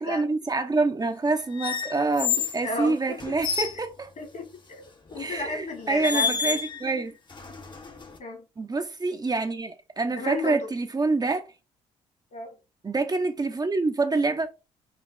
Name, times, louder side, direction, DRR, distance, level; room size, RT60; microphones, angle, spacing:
voice 1, 0.0-4.1 5.2-7.1 8.6-11.5 12.8-14.5, right 3 dB, 25° right, 0.9 m, -26 dB
sound 1, 1.6-2.6 3.2-3.8 5.1-5.3 6.0-6.9 7.3-8.2, left 6 dB, 30° left, 1.1 m, -29 dB
voice 2, 2.4-3.2 4.2-6.4 8.2-8.4 10.1-10.7 12.3-12.5, left 2 dB, 55° left, 2.4 m, -33 dB
5.4 x 2.4 x 3.8 m
supercardioid pair, 60°, 15 cm